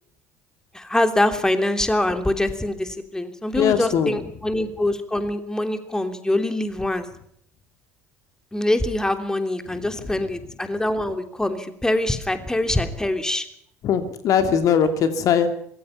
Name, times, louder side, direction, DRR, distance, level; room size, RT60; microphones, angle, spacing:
voice 1, 0.7-7.1 8.5-13.5, left 1 dB, 10° left, 8 dB, 3.1 m, -24 dB
voice 2, 3.5-4.2 9.7-9.9 13.8-15.5, left 7 dB, 50° left, 8 dB, 2.5 m, -20 dB
24.5 x 22.5 x 5.8 m, 0.67 s
figure-of-eight pair, 60°, 7 cm